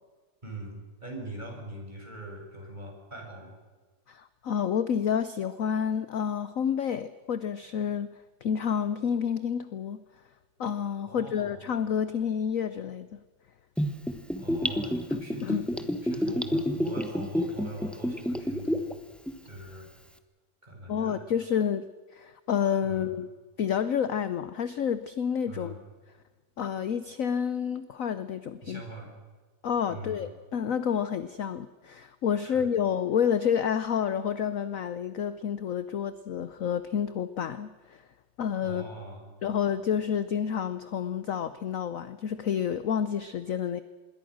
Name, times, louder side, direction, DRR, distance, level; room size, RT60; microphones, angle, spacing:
voice 1, 0.4-3.5 11.1-11.6 14.4-14.9 15.2-19.0 19.4-19.9 20.6-21.2 22.8-23.1 25.5-25.9 28.6-29.1 29.9-30.3 32.4-32.7 38.6-39.4, right 1 dB, 20° right, 0 dB, 7.0 m, -42 dB
voice 2, 4.1-8.1 8.4-10.0 10.6-13.2 15.1-15.7 20.9-21.9 22.1-23.3 23.6-25.8 26.6-28.8 29.6-38.0 38.4-38.9 39.4-43.8, left 8 dB, 55° left, 13 dB, 1.0 m, -29 dB
Gurgling / Bathtub (filling or washing), 13.8-18.9 19.3-19.4, equal, ahead, 1.1 m, -28 dB
26.5 x 21.5 x 6.4 m, 1.4 s
omnidirectional pair, 2.0 m